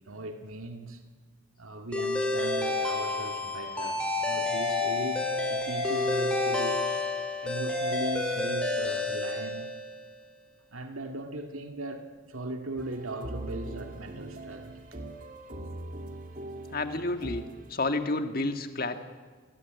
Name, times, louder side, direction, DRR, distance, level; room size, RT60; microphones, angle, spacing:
voice 1, 0.1-1.0 1.6-6.8 7.4-9.7 10.7-14.8 15.5-15.8, right 2 dB, 85° right, 2.1 m, -38 dB
sound 1, 1.9-10.1, left 3 dB, 5° left, 4.5 m, -29 dB
sound 2, 12.8-17.7, right 1 dB, 40° right, 2.2 m, -41 dB
voice 2, 16.7-17.4 17.7-19.0, left 2 dB, 45° left, 1.9 m, -30 dB
27.5 x 20.0 x 9.5 m
head